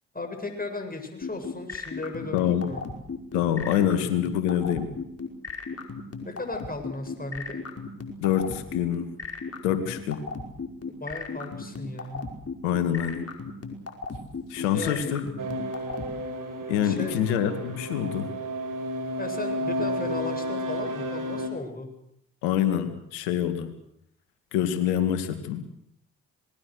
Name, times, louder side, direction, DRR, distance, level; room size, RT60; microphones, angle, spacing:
voice 1, 0.1-2.8 6.2-7.6 10.9-12.3 14.7-15.0 16.8-17.2 19.2-21.9, left 2 dB, 25° left, 6 dB, 7.5 m, -36 dB
sound 1, 1.2-16.1, left 5 dB, 40° left, 5.1 m, -35 dB
voice 2, 2.3-2.7 3.3-4.9 8.2-9.1 9.6-10.2 12.6-13.3 14.5-15.3 16.7-18.3 22.4-23.7 24.5-25.7, left 10 dB, 90° left, 9 dB, 2.1 m, -26 dB
sound 2, 15.4-21.5, equal, 60° right, 5.0 m, -32 dB
26.0 x 20.5 x 6.5 m, 0.73 s
hypercardioid pair, 45°, 36 cm